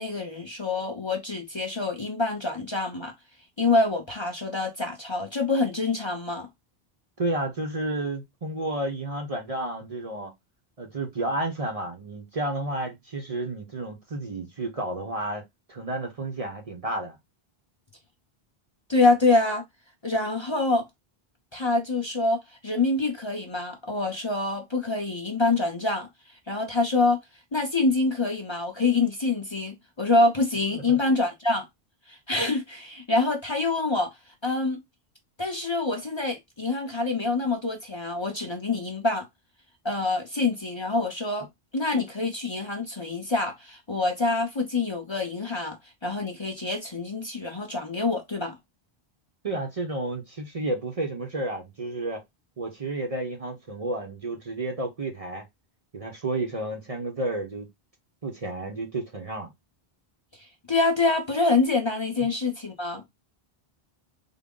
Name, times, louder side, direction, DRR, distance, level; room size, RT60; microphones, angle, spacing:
voice 1, 0.0-3.1 3.6-6.5 18.9-19.6 20.0-20.8 21.5-26.1 26.5-27.2 27.5-31.6 32.1-34.1 34.4-34.8 35.4-39.2 39.8-41.5 41.7-45.8 46.0-48.6 60.7-63.0, left 3 dB, 30° left, 0.7 m, -26 dB
voice 2, 7.2-10.3 10.8-15.4 15.7-17.2 30.7-31.0 49.4-52.2 52.6-55.4 55.9-57.7 58.2-59.5, right 2 dB, 40° right, 0.8 m, -31 dB
3.7 x 2.1 x 3.6 m
omnidirectional pair, 1.0 m